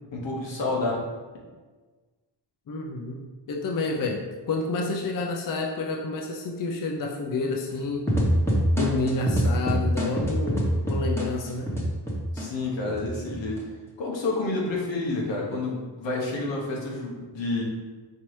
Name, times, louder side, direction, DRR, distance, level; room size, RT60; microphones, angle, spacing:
voice 1, 0.1-0.9 12.3-13.7 14.0-17.6, left 2 dB, 85° left, -3 dB, 1.0 m, -29 dB
voice 2, 2.7-3.2 3.5-8.0 8.7-11.7, left 3 dB, 50° left, 1 dB, 0.5 m, -29 dB
sound 1, 8.1-12.4 12.9-13.6, equal, 5° left, 0.9 m, -25 dB
4.5 x 2.8 x 3.2 m, 1.4 s
cardioid pair, 70°, 43 cm